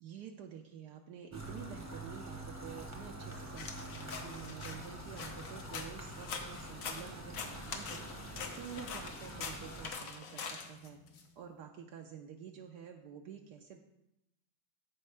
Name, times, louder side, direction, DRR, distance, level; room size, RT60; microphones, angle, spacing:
voice 1, 0.0-11.0 11.4-13.8, right 8 dB, 75° right, 3 dB, 1.1 m, -49 dB
sound 1, 1.3-9.9, right 1 dB, 10° right, 0.8 m, -46 dB
sound 2, 3.6-11.2, left 5 dB, 65° left, 1.3 m, -44 dB
13.5 x 4.6 x 3.3 m, 0.87 s
omnidirectional pair, 1.9 m